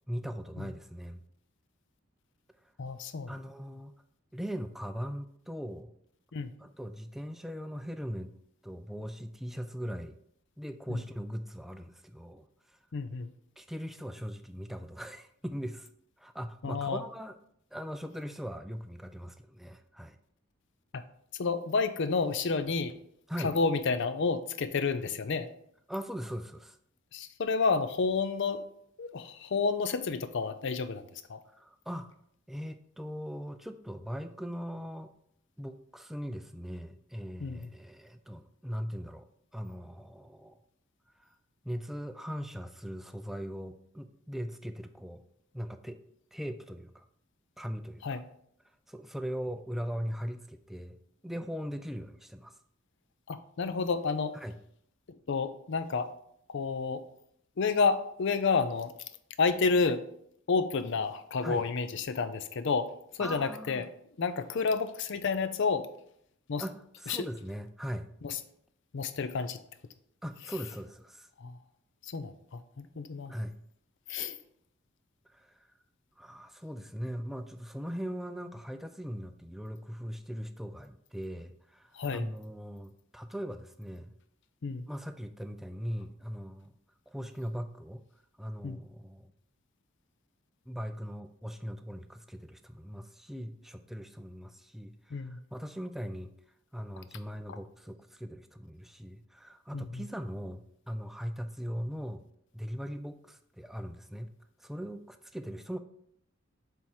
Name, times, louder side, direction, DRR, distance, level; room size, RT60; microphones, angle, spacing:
voice 1, 0.1-1.2 3.3-3.9 4.3-5.9 6.6-8.3 8.6-10.1 10.6-12.8 13.6-15.9 16.2-17.3 17.7-20.2 23.3-23.5 25.9-26.8 31.5-32.1 32.5-35.1 35.6-39.2 39.5-40.6 41.2-41.3 41.6-45.2 45.5-46.0 46.3-47.1 47.6-48.2 48.9-51.0 51.2-52.5 54.3-54.5 61.4-61.7 63.2-63.9 66.6-68.1 70.2-71.3 73.3-73.5 75.3-75.6 76.2-84.1 84.9-86.7 87.1-88.0 88.4-89.3 90.7-96.3 96.7-102.2 102.5-104.3 104.6-105.8, equal, ahead, 8 dB, 0.4 m, -40 dB
voice 2, 2.8-3.3 6.3-6.5 10.9-11.0 12.9-13.3 16.6-17.0 20.9-21.0 21.3-22.9 23.4-25.5 27.1-28.6 29.0-31.0 31.3-31.4 37.4-37.7 48.0-48.2 53.3-54.4 55.3-56.1 56.5-57.0 57.6-58.9 59.4-60.0 60.5-63.9 64.2-65.9 66.5-66.6 67.1-67.3 68.2-68.4 68.9-69.6 71.4-71.6 72.0-73.3 74.1-74.4 81.9-82.3 84.6-84.9 88.6-88.8 95.1-95.4 97.5-97.6 99.7-100.0, left 4 dB, 65° left, 12 dB, 0.5 m, -30 dB
7.4 x 3.6 x 4.4 m, 0.71 s
head